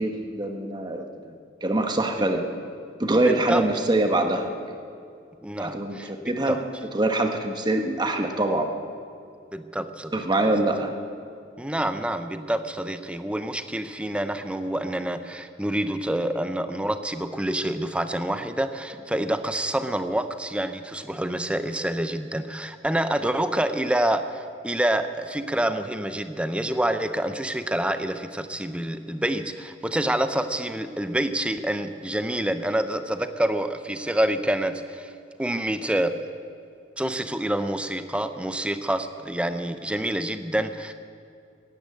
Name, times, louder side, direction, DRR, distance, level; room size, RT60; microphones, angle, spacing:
voice 1, 0.0-1.3 1.6-2.5 3.0-4.6 5.6-6.6 6.9-8.7 10.1-10.9, right 2 dB, 25° right, 5 dB, 1.2 m, -24 dB
voice 2, 3.2-3.6 5.4-6.1 6.5-6.6 9.5-10.5 11.6-35.1 35.4-36.1 37.0-40.9, right 1 dB, 5° right, 9 dB, 0.6 m, -27 dB
15.5 x 10.5 x 8.4 m, 2.4 s
head